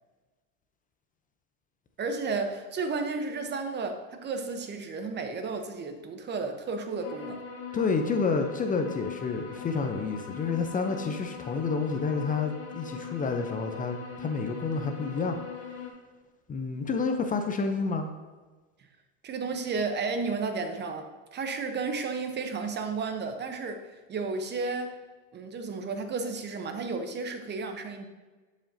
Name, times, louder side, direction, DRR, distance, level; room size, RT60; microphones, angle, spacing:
voice 1, 2.0-7.4 19.2-24.9 25.3-28.1, right 4 dB, 30° right, 7 dB, 0.9 m, -33 dB
sound 1, 7.0-15.9, left 6 dB, 75° left, 1.5 m, -40 dB
voice 2, 7.7-15.4 16.5-18.1, left 4 dB, 25° left, 5 dB, 0.7 m, -29 dB
11.0 x 5.1 x 2.8 m, 1.3 s
hypercardioid pair, 95°, 34 cm